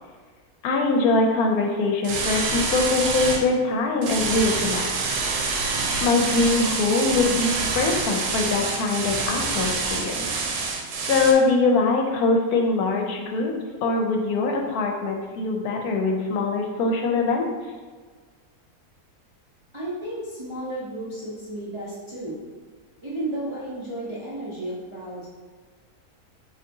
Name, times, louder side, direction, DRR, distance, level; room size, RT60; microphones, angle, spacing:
voice 1, 0.6-4.9 6.0-10.3 11.1-13.5 13.8-17.5, left 3 dB, 75° left, 2 dB, 1.0 m, -22 dB
sound 1, 2.0-3.4 4.0-11.3, right 4 dB, 90° right, 1.1 m, -26 dB
voice 2, 19.7-22.4 23.0-25.3, right 1 dB, 30° right, -8 dB, 0.5 m, -33 dB
5.1 x 2.8 x 2.7 m, 1.5 s
omnidirectional pair, 1.6 m